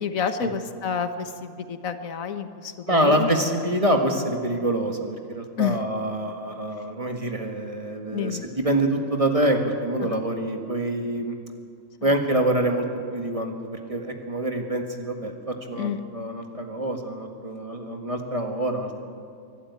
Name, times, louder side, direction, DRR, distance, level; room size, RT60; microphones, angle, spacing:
voice 1, 0.0-3.3 5.6-5.8 8.1-8.5 10.0-10.2 15.7-16.0, left 7 dB, 85° left, 9 dB, 1.5 m, -29 dB
voice 2, 2.9-11.4 12.0-12.8 13.1-19.0, right 1 dB, 25° right, 3 dB, 1.7 m, -26 dB
23.5 x 12.0 x 9.6 m, 2.3 s
omnidirectional pair, 1.4 m